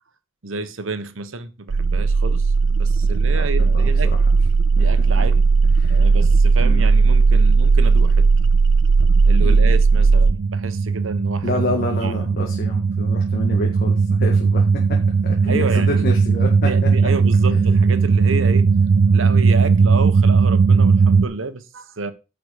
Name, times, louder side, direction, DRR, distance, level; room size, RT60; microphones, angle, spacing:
voice 1, 0.4-4.1 4.8-5.5 5.9-8.3 9.2-11.6 12.0-12.3 15.5-16.0 16.6-18.7 19.1-22.1, right 3 dB, 90° right, 1.2 m, -30 dB
sound 1, 1.7-21.3, right 4 dB, 65° right, 0.5 m, -16 dB
voice 2, 3.1-3.9 4.8-4.9 5.8-6.0 6.6-6.9 9.4-9.7 11.4-15.0 15.2-16.7 17.5-17.8, left 1 dB, 50° left, 1.8 m, -28 dB
10.0 x 5.1 x 6.4 m
head